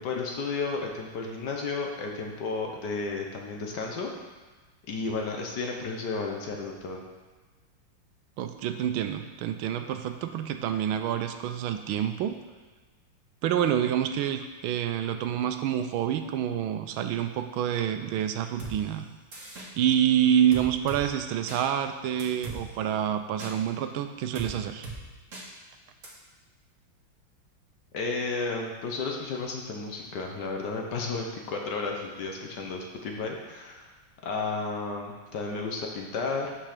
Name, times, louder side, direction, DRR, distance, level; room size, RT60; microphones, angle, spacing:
voice 1, 0.0-4.1 4.9-7.0 27.9-33.9 34.2-36.5, left 4 dB, 60° left, 1 dB, 1.5 m, -33 dB
voice 2, 8.4-12.4 13.4-19.1 19.8-24.9, right 10 dB, 80° right, 8 dB, 1.4 m, -27 dB
sound 1, 18.6-18.7 19.3-19.7 20.5-21.0 21.5-21.6 22.2-22.6 23.4-23.5 24.3-24.5 24.8-25.0 25.3-25.4 26.0-26.1, right 3 dB, 40° right, 1.7 m, -38 dB
6.1 x 5.7 x 6.6 m, 1.3 s
omnidirectional pair, 2.3 m